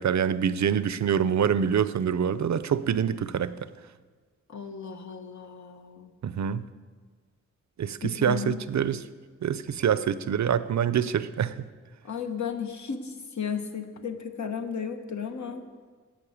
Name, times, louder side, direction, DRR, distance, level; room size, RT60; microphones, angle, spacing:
voice 1, 0.0-3.7 6.2-6.7 7.8-9.0 9.4-11.6, right 8 dB, 65° right, 15 dB, 0.5 m, -26 dB
voice 2, 4.5-6.1 8.0-8.6 12.0-15.7, left 7 dB, 70° left, 6 dB, 1.2 m, -34 dB
11.0 x 7.6 x 8.5 m, 1.5 s
wide cardioid pair, 105°, 30 cm